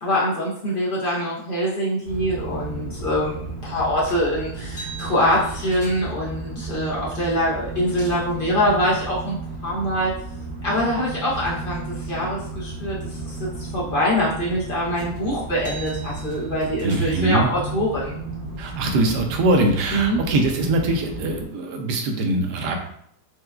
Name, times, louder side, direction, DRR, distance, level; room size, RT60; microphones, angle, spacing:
voice 1, 0.0-9.4 9.6-10.1 10.6-18.2 19.9-20.2, equal, 65° left, -6 dB, 0.5 m, -24 dB
sound 1, 2.0-21.5, right 3 dB, 50° right, 1.6 m, -34 dB
sound 2, 4.1-4.3 4.6-6.2 7.2-7.3 7.6-8.3 15.0-15.2 15.5-17.3 18.1-18.7, right 4 dB, 20° left, 0.9 m, -42 dB
voice 2, 16.8-17.5 18.6-22.8, right 2 dB, 80° right, 3 dB, 1.2 m, -22 dB
4.6 x 2.2 x 2.3 m, 0.68 s
omnidirectional pair, 1.8 m